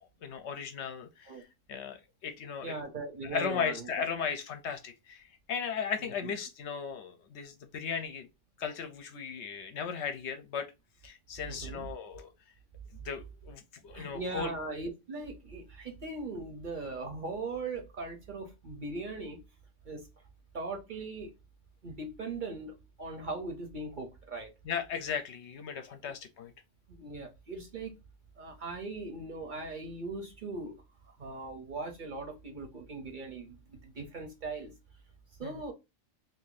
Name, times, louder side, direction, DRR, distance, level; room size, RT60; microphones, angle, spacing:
voice 1, 0.2-1.3 1.7-2.7 3.2-8.3 8.6-10.7 11.0-12.3 13.0-14.5 24.6-26.5 35.4-35.6, left 6 dB, 70° left, 0.8 m, -36 dB
voice 2, 2.6-3.9 6.0-6.3 11.5-11.9 13.9-19.4 19.9-20.0 20.5-21.3 21.8-24.5 26.9-27.9 28.4-30.8 31.2-34.7 35.4-35.7, right 3 dB, 45° right, 0.8 m, -39 dB
2.6 x 2.6 x 3.8 m
omnidirectional pair, 1.3 m